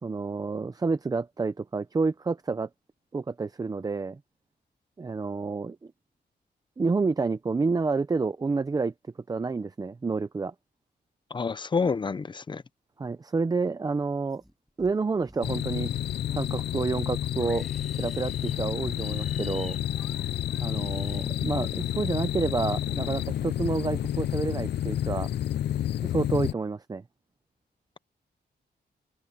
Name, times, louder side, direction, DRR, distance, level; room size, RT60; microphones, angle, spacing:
voice 1, 0.0-2.7 3.1-4.2 5.0-5.9 6.8-8.9 9.3-10.5 13.0-14.4 14.8-15.9 16.3-17.6 18.0-19.8 20.6-25.3 26.0-27.0, right 4 dB, 20° right, 0.5 m, -29 dB
voice 2, 11.3-12.6, left 5 dB, 25° left, 0.6 m, -28 dB
Livestock farm animals working animals, 14.3-14.9 15.2-15.9 16.3-21.9 22.1-22.7, equal, ahead, 6.6 m, -54 dB
sound 1, 15.4-26.5, left 11 dB, 70° left, 0.4 m, -30 dB
open air
wide cardioid pair, 175°, 18 cm